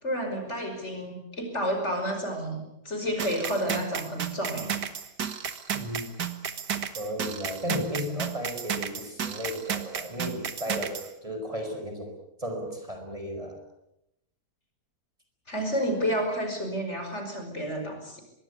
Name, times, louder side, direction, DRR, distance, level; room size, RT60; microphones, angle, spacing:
voice 1, 0.0-4.7 15.5-18.2, equal, 40° left, 5 dB, 5.7 m, -30 dB
sound 1, 3.2-11.1, right 8 dB, 85° right, 2.2 m, -33 dB
voice 2, 5.7-6.1 7.0-12.1 12.4-13.6, equal, 20° right, 4 dB, 5.4 m, -34 dB
24.5 x 22.5 x 8.4 m, 0.83 s
omnidirectional pair, 1.8 m